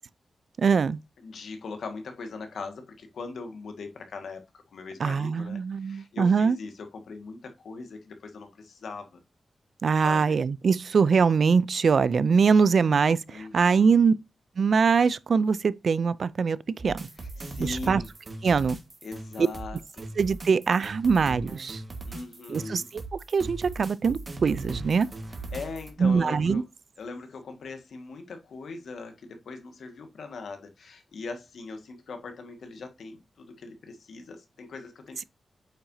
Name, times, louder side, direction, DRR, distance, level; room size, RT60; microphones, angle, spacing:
voice 1, 0.6-1.0 5.0-6.6 9.8-14.1 14.6-16.6 16.8-17.0 17.6-18.0 18.4-18.8 20.2-21.8 22.5-23.0 23.3-25.1 26.0-26.6, right 5 dB, 55° right, 0.4 m, -23 dB
voice 2, 1.2-9.2 10.0-10.4 13.3-14.1 17.2-18.1 19.0-20.0 22.1-22.9 25.5-26.6 27.0-35.2, left 3 dB, 90° left, 1.7 m, -40 dB
sound 1, 16.8-25.9, right 2 dB, 35° right, 1.6 m, -39 dB
8.5 x 6.0 x 2.7 m
wide cardioid pair, 155°, 0 cm